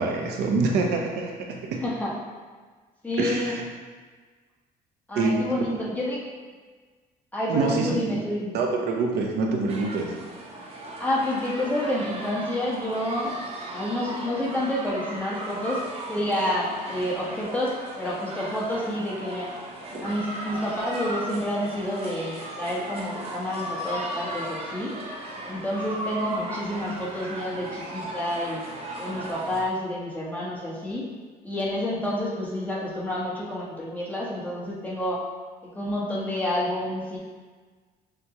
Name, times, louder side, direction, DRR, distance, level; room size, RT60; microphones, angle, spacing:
voice 1, 0.0-1.8 3.2-3.6 5.2-5.4 7.5-8.3 8.5-10.1, right 3 dB, 75° right, 1 dB, 0.7 m, -26 dB
voice 2, 1.8-2.1 3.0-3.6 5.1-6.2 7.3-8.6 11.0-13.3 13.7-19.5 20.0-24.9 25.4-28.7 29.0-31.0 31.4-35.2 35.7-37.2, left 1 dB, 10° left, -6 dB, 1.2 m, -29 dB
sound 1, 9.7-29.6, right 1 dB, 35° right, 0.9 m, -36 dB
6.5 x 2.2 x 2.9 m, 1.4 s
cardioid pair, 110°, 17 cm